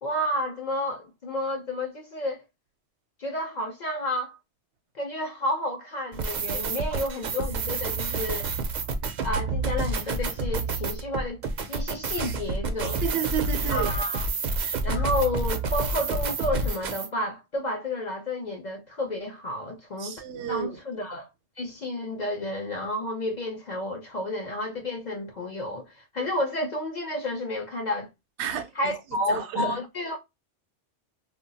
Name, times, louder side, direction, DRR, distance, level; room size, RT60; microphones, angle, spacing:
voice 1, 0.0-2.4 3.2-4.4 4.9-8.5 9.2-11.4 11.7-13.0 13.7-14.2 14.8-20.2 20.5-21.3 21.6-28.1 28.8-30.2, left 1 dB, 55° left, 0.5 m, -31 dB
sound 1, 6.1-17.1, right 3 dB, 55° right, 0.5 m, -29 dB
voice 2, 13.0-13.9 14.6-14.7 20.0-20.8 28.4-29.8, right 9 dB, 80° right, 0.9 m, -31 dB
2.2 x 2.2 x 3.9 m
omnidirectional pair, 1.2 m